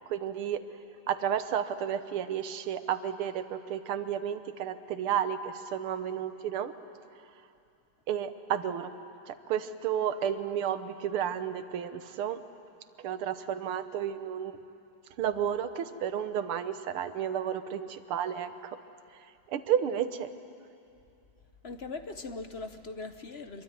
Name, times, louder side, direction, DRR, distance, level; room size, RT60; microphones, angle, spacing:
voice 1, 0.1-0.6 1.1-6.7 8.1-8.9 9.3-12.4 13.0-14.6 15.2-18.8 19.5-20.3, right 9 dB, 85° right, 11 dB, 1.9 m, -32 dB
voice 2, 21.6-23.6, left 3 dB, 40° left, 8 dB, 0.9 m, -40 dB
26.0 x 23.0 x 9.4 m, 2.6 s
omnidirectional pair, 2.3 m